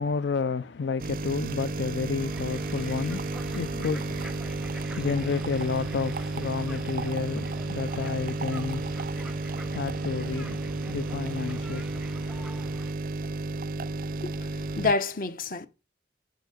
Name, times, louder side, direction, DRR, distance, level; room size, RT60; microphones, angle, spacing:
voice 1, 0.0-12.5, left 5 dB, 80° left, 0.4 m, -31 dB
sound 1, 1.0-14.9, right 3 dB, 50° right, 0.4 m, -32 dB
sound 2, 2.2-12.9, right 1 dB, 5° right, 0.6 m, -44 dB
voice 2, 14.2-15.7, left 3 dB, 50° left, 0.9 m, -28 dB
8.3 x 6.7 x 6.5 m
head